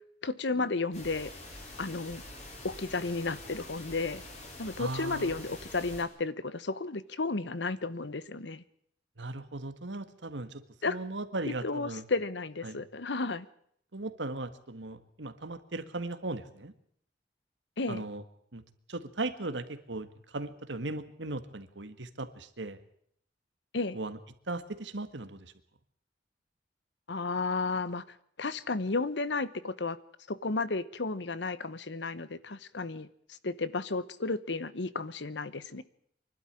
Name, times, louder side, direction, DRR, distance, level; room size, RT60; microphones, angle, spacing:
voice 1, 0.2-1.3 1.8-2.2 2.6-4.2 4.6-8.6 10.8-11.0 11.6-13.5 17.8-18.0 23.7-24.0 27.1-28.0 28.4-30.0 30.3-35.8, left 3 dB, 80° left, 17 dB, 1.0 m, -33 dB
sound 1, 0.9-6.0, left 2 dB, 40° left, 5.0 m, -46 dB
voice 2, 4.8-5.3 9.2-12.0 12.6-12.8 13.9-16.7 17.9-18.2 18.5-18.6 18.9-22.8 23.9-24.2 24.5-25.5, right 2 dB, 90° right, 11 dB, 1.7 m, -37 dB
24.5 x 12.0 x 9.9 m, 0.68 s
head